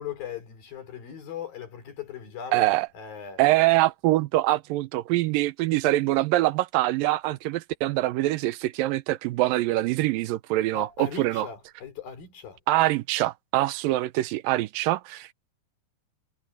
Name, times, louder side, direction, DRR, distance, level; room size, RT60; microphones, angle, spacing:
voice 1, 0.0-3.5 10.7-12.6, left 7 dB, 85° left, 5.6 m, -39 dB
voice 2, 2.5-2.9 3.4-11.5 12.7-15.3, right 17 dB, 90° right, 2.4 m, -24 dB
omnidirectional pair, 4.0 m